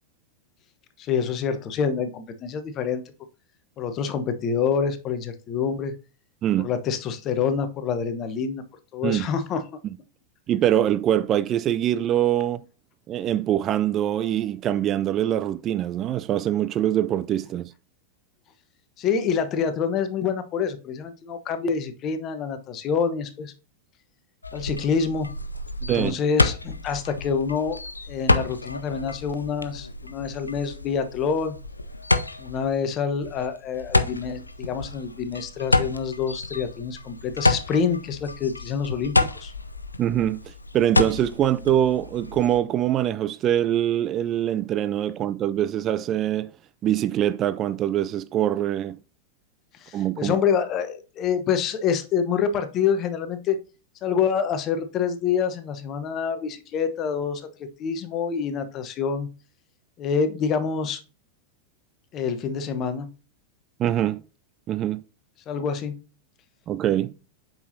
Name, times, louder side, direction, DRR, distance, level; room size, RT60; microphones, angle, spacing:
voice 1, 1.0-3.0 3.8-5.9 6.6-8.6 8.9-9.6 19.0-23.5 24.5-25.4 25.8-27.8 28.1-31.6 32.4-39.5 49.8-53.6 54.0-57.4 57.8-59.3 60.0-61.0 62.1-63.1 65.5-66.0, left 6 dB, 35° left, 1.0 m, -26 dB
voice 2, 10.5-12.6 13.1-17.7 25.9-26.2 40.0-46.5 46.8-49.0 49.9-50.4 63.8-64.2 64.7-65.0 66.7-67.1, right 11 dB, 30° right, 0.3 m, -24 dB
sound 1, 24.4-42.6, left 2 dB, 80° left, 0.5 m, -28 dB
8.2 x 6.0 x 2.7 m
figure-of-eight pair, 90°, 0 cm